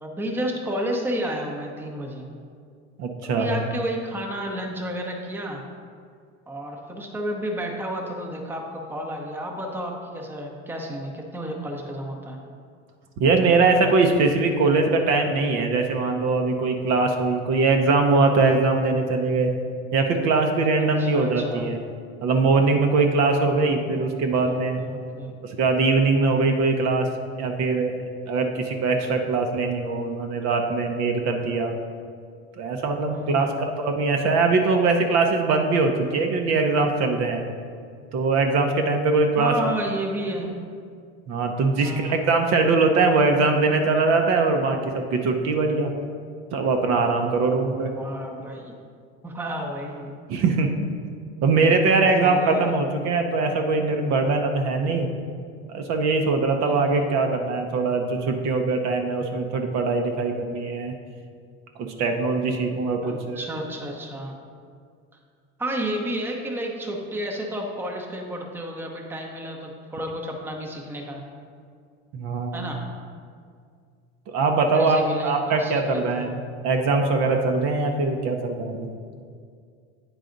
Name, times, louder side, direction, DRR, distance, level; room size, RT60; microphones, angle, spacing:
voice 1, 0.0-2.2 3.4-5.6 6.5-12.4 20.8-21.7 23.7-24.1 24.4-25.3 33.1-33.5 39.4-40.5 41.8-42.3 48.0-48.8 49.2-50.2 51.6-51.7 51.9-52.8 56.6-57.2 63.0-64.3 65.6-71.2 72.5-72.8 74.5-76.3, right 1 dB, 5° right, 1 dB, 0.8 m, -32 dB
voice 2, 3.0-3.6 13.2-19.5 19.9-21.8 22.2-24.8 25.4-27.1 27.4-28.0 28.3-31.7 32.6-37.4 38.1-39.5 41.3-45.9 46.5-47.9 50.3-50.7 51.4-55.1 55.7-60.9 61.8-63.5 72.1-72.7 74.3-76.4 76.6-78.9, right 3 dB, 50° right, 4 dB, 0.7 m, -22 dB
9.2 x 4.0 x 3.8 m, 2.2 s
supercardioid pair, 110°, 34 cm